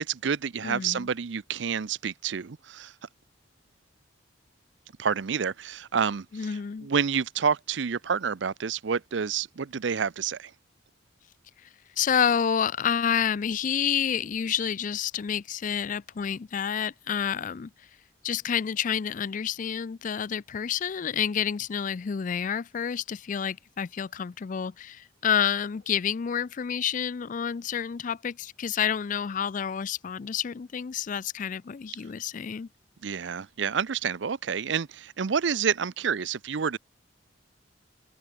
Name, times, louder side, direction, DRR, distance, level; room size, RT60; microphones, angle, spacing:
voice 1, 0.0-2.9 5.0-10.5 33.0-36.8, right 6 dB, 70° right, 0.6 m, -29 dB
voice 2, 0.6-1.1 6.3-6.9 12.0-17.7 18.2-32.7, left 8 dB, 45° left, 0.4 m, -29 dB
open air
head